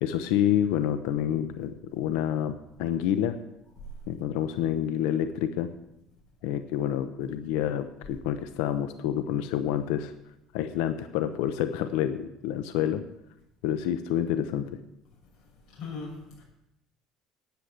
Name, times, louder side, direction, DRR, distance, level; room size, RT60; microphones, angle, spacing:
voice 1, 0.0-3.4 4.1-5.7 6.4-10.1 10.5-13.0 13.6-14.7, left 10 dB, 85° left, 10 dB, 0.8 m, -28 dB
voice 2, 15.7-16.4, left 4 dB, 55° left, -2 dB, 6.4 m, -39 dB
10.0 x 9.6 x 7.8 m, 0.86 s
cardioid pair, 130°, 0 cm